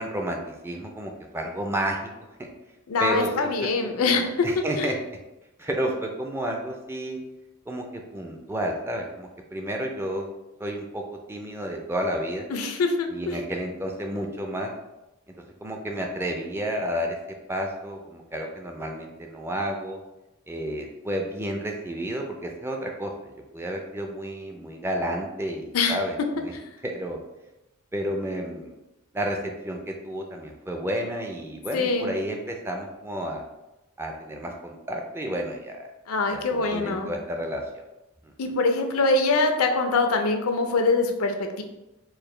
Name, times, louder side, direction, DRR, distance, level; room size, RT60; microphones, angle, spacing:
voice 1, 0.0-2.1 2.4-2.5 3.0-5.0 5.6-7.2 7.7-10.3 10.6-11.0 11.3-12.5 13.1-14.7 15.6-17.2 17.5-20.0 20.5-26.5 26.8-27.2 27.9-28.7 29.1-33.4 34.0-35.9 36.3-37.8, right 1 dB, 10° right, 2 dB, 0.4 m, -31 dB
voice 2, 2.9-4.5 4.8-4.9 12.5-13.4 25.7-26.0 26.5-26.6 31.7-32.1 36.1-37.1 38.4-41.6, left 3 dB, 85° left, 5 dB, 0.5 m, -24 dB
4.6 x 2.2 x 3.2 m, 0.97 s
head